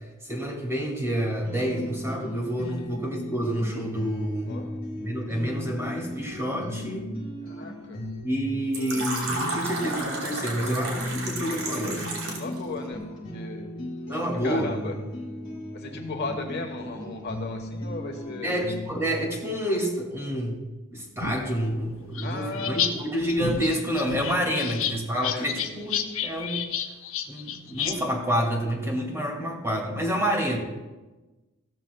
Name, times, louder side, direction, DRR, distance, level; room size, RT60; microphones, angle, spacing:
voice 1, 0.2-4.6 5.0-7.1 8.2-12.1 14.1-14.8 18.4-20.6 20.9-26.7 27.3-30.6, equal, 15° right, -1 dB, 2.2 m, -28 dB
sound 1, 1.4-19.0, left 1 dB, 25° left, 4.5 m, -37 dB
voice 2, 7.4-8.0 11.5-13.7 14.1-14.9 15.7-18.6 22.2-23.0 24.5-24.8 25.1-25.5 25.8-26.1, left 3 dB, 50° left, 3 dB, 1.2 m, -37 dB
Fill (with liquid), 8.7-12.6, right 2 dB, 80° right, 3.1 m, -32 dB
sound 2, 21.2-22.9 23.2-27.9, left 7 dB, 70° left, 0.8 m, -30 dB
16.0 x 13.0 x 2.3 m, 1.1 s
head